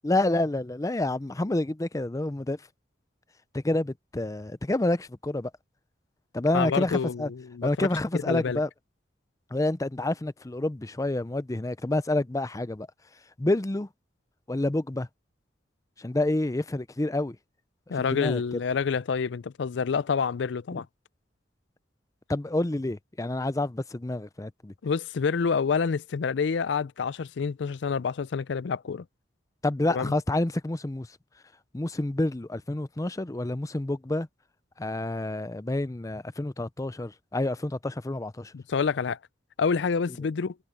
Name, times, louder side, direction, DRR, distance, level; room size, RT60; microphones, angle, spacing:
voice 1, 0.0-2.6 3.5-5.5 6.3-7.3 7.6-8.7 9.5-12.9 13.4-13.9 14.5-15.1 16.0-17.4 18.0-18.4 20.7-20.8 22.3-24.7 29.6-31.1 31.7-34.3 34.8-38.5, left 2 dB, 20° left, 0.5 m, -28 dB
voice 2, 6.5-7.9 8.1-8.6 17.9-20.8 24.8-29.0 29.9-30.1 38.5-39.2 39.6-40.6, left 5 dB, 70° left, 0.4 m, -28 dB
head